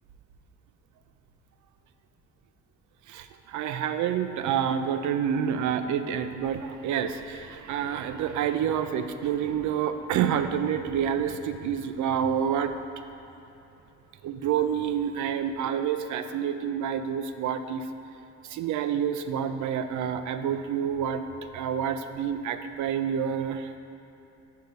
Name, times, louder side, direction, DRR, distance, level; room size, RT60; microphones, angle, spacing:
voice 1, 3.1-12.7 14.2-17.9 18.5-21.2 21.5-23.7, right 8 dB, 75° right, 9 dB, 0.5 m, -28 dB
6.6 x 4.7 x 5.2 m, 2.9 s
cardioid pair, 90°, 30 cm